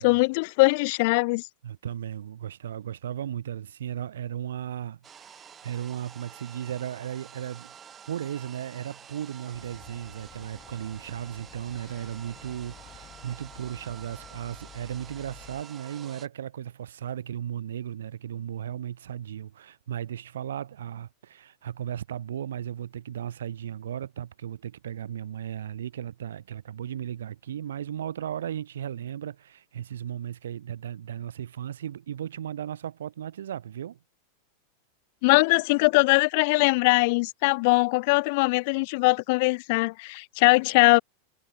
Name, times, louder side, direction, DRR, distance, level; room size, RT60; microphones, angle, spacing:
voice 1, 0.0-1.4 35.2-41.0, left 27 dB, 45° left, 0.4 m, -21 dB
voice 2, 1.6-7.7 8.1-34.0, right 10 dB, 65° right, 1.4 m, -36 dB
sound 1, 5.0-16.3, right 8 dB, 25° right, 6.2 m, -49 dB
sound 2, 9.5-15.6, left 12 dB, 30° left, 4.5 m, -51 dB
figure-of-eight pair, 90°, 0 cm